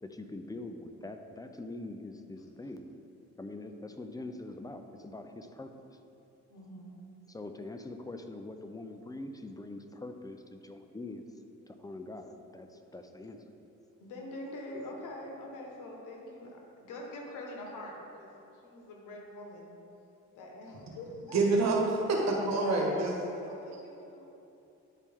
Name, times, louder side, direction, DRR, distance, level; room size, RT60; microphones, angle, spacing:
voice 1, 0.0-2.9 3.4-5.7 7.3-11.2 11.7-13.4, left 2 dB, 10° left, 6 dB, 0.5 m, -43 dB
voice 2, 6.5-7.0 14.0-19.7 20.3-21.4 22.6-24.3, left 1 dB, 90° left, -1 dB, 1.3 m, -45 dB
voice 3, 21.3-23.1, right 2 dB, 60° right, -1 dB, 1.4 m, -27 dB
9.8 x 4.3 x 3.6 m, 2.8 s
cardioid pair, 90°, 30 cm